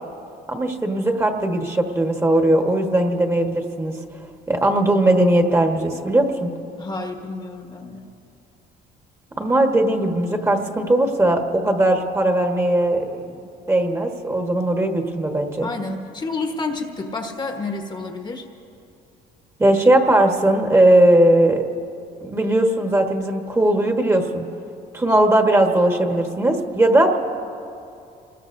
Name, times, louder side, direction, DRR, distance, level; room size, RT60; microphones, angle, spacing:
voice 1, 0.5-3.9 4.5-6.5 9.4-13.4 13.7-15.7 19.6-21.6 22.2-24.5 24.9-27.2, right 1 dB, 15° right, 3 dB, 1.4 m, -18 dB
voice 2, 6.8-8.1 15.6-18.5, left 3 dB, 25° left, 3 dB, 1.3 m, -29 dB
26.0 x 20.5 x 2.7 m, 2.5 s
cardioid pair, 110°, 17 cm